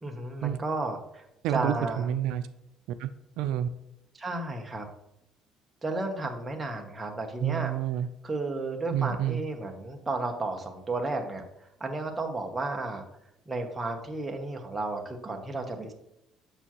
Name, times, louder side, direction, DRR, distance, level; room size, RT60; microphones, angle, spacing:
voice 1, 0.0-2.1 4.2-4.9 5.8-7.7 8.2-11.4 11.8-13.0 13.5-15.9, right 2 dB, 10° right, 2 dB, 0.9 m, -33 dB
voice 2, 1.4-2.4 3.0-3.1 3.4-3.7 7.4-8.1 8.9-9.4, right 11 dB, 80° right, 10 dB, 0.4 m, -28 dB
7.0 x 6.9 x 3.0 m, 0.83 s
cardioid pair, 170°, 0 cm